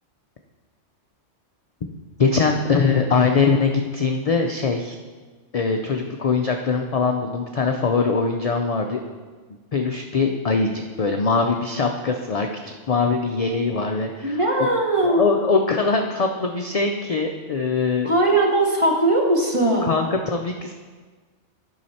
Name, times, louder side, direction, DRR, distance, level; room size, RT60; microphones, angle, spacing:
voice 1, 2.2-5.0 5.5-9.0 9.7-14.7 15.0-18.1 19.8-20.7, left 4 dB, 60° left, 4 dB, 0.4 m, -22 dB
voice 2, 14.2-15.2 18.0-20.0, right 2 dB, 25° right, 0 dB, 1.1 m, -19 dB
10.5 x 5.7 x 4.2 m, 1.4 s
omnidirectional pair, 1.3 m